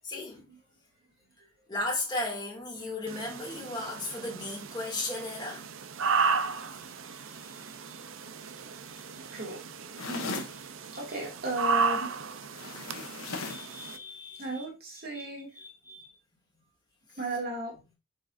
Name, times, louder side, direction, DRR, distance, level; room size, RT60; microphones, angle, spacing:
voice 1, 0.0-0.4 1.4-5.7 6.6-8.0 8.4-9.4 10.9-11.0 13.0-13.1 13.5-14.7 15.1-15.3 15.5-16.1, left 2 dB, 20° left, 2.5 m, -37 dB
sound 1, 3.1-14.0, right 5 dB, 70° right, 0.7 m, -34 dB
sound 2, 10.0-10.6 12.5-13.7, left 4 dB, 80° left, 1.4 m, -37 dB
voice 2, 10.0-10.4 10.9-12.1 14.4-15.5 17.2-17.8, right 1 dB, 45° right, 2.5 m, -35 dB
9.1 x 5.0 x 2.6 m
head